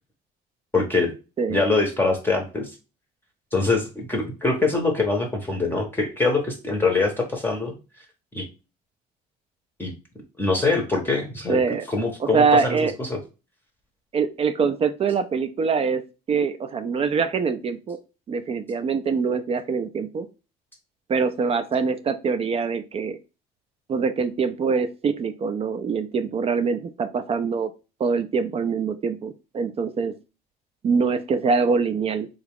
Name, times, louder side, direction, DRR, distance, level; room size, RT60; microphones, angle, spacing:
voice 1, 0.7-1.1 1.5-2.7 3.5-7.8 8.3-8.5 9.8-9.9 10.4-11.6 11.9-13.2, left 3 dB, 10° left, 1 dB, 0.7 m, -23 dB
voice 2, 1.4-1.7 11.5-11.9 12.2-12.9 14.1-16.0 16.3-18.0 18.3-20.3 21.1-23.2 23.9-27.7 28.0-30.1 30.8-32.3, right 5 dB, 35° right, 10 dB, 0.4 m, -24 dB
3.7 x 2.3 x 3.4 m, 0.31 s
cardioid pair, 110°, 17 cm